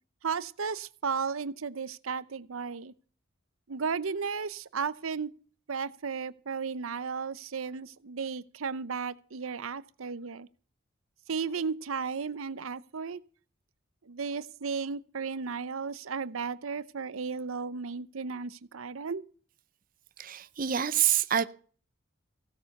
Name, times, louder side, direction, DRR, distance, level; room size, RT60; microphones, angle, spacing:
voice 1, 0.2-2.9 3.7-5.3 5.7-10.5 11.3-13.2 14.1-19.2, right 5 dB, 85° right, 0.7 m, -34 dB
voice 2, 20.2-21.4, right 10 dB, 40° right, 0.6 m, -26 dB
16.5 x 8.1 x 6.6 m
head